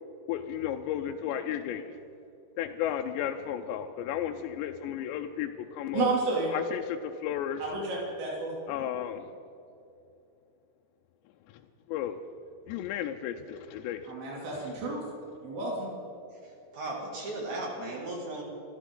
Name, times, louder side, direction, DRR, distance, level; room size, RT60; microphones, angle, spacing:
voice 1, 0.3-1.9 2.6-6.1 6.5-7.6 8.7-9.3 11.5-11.6 11.9-12.2 12.7-14.1 14.5-14.7, left 10 dB, 85° left, 4 dB, 2.9 m, -33 dB
voice 2, 5.9-6.5 7.6-8.5 14.1-15.0 15.4-15.9, right 3 dB, 90° right, -4 dB, 5.0 m, -31 dB
voice 3, 16.4-18.4, right 2 dB, 45° right, -2 dB, 3.2 m, -36 dB
27.5 x 14.0 x 3.8 m, 2.7 s
omnidirectional pair, 5.0 m